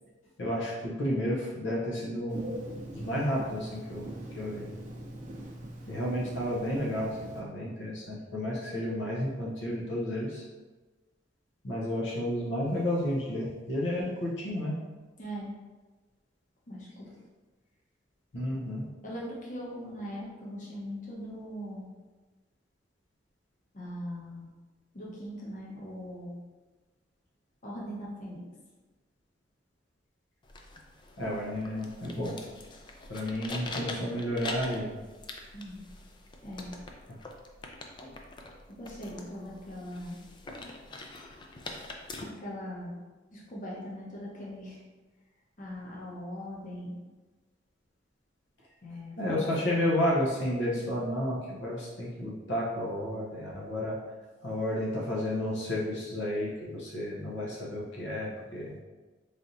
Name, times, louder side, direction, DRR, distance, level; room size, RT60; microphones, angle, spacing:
voice 1, 0.4-2.6 2.9-4.1 4.4-4.7 5.9-10.4 11.6-14.7 18.3-18.9 31.2-32.4 33.1-35.0 49.2-54.0 54.4-58.8, left 1 dB, 80° left, -4 dB, 0.7 m, -31 dB
Telephone, 2.3-7.4, right 1 dB, 40° right, 0.6 m, -42 dB
voice 2, 15.2-15.5 16.7-17.1 19.0-21.9 23.7-24.5 24.9-26.3 27.6-28.4 35.5-35.9 36.4-36.7 38.8-40.2 42.4-42.9 43.3-44.8 45.6-46.9 48.8-49.9, equal, 45° left, -5 dB, 1.0 m, -40 dB
sound 1, 30.4-42.2, left 2 dB, 25° left, 0.3 m, -44 dB
4.1 x 3.3 x 2.6 m, 1.3 s
head